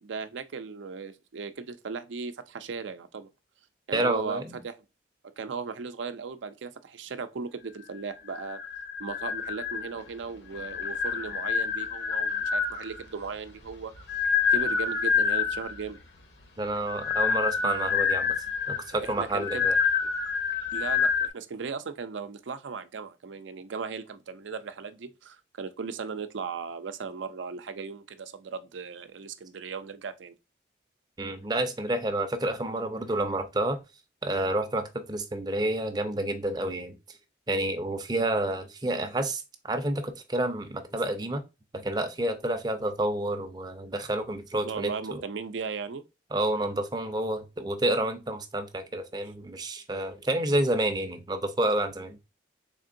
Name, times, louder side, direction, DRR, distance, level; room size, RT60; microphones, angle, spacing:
voice 1, 0.0-3.3 3.9-4.8 5.4-8.6 9.0-13.9 14.5-16.0 19.0-19.7 20.7-30.3 44.6-46.0, right 5 dB, 85° right, 0.5 m, -37 dB
voice 2, 3.9-4.6 16.6-18.3 18.7-19.8 31.2-33.8 34.2-37.0 37.5-41.4 41.7-45.2 46.3-52.2, right 1 dB, 20° right, 0.5 m, -29 dB
sound 1, 8.3-10.1 10.5-13.0 13.7-15.8 16.8-21.3, left 6 dB, 65° left, 0.8 m, -27 dB
3.6 x 3.6 x 2.5 m
head